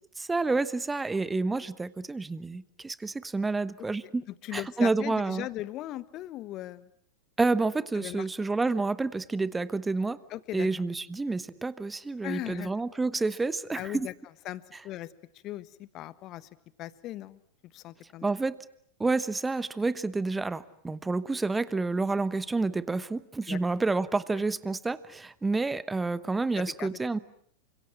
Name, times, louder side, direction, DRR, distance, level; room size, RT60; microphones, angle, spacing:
voice 1, 0.2-4.2 4.5-5.5 7.4-10.2 10.5-14.1 18.2-18.6 19.0-27.2, right 3 dB, 10° right, 17 dB, 1.1 m, -29 dB
voice 2, 4.0-6.9 7.9-8.2 10.3-10.7 12.2-12.7 13.7-14.1 14.4-15.1 15.4-16.5 16.8-17.4 17.7-18.2 23.5-23.6 26.6-27.0, left 15 dB, 40° left, 17 dB, 1.3 m, -38 dB
29.0 x 26.0 x 7.5 m, 0.65 s
figure-of-eight pair, 90°, 0 cm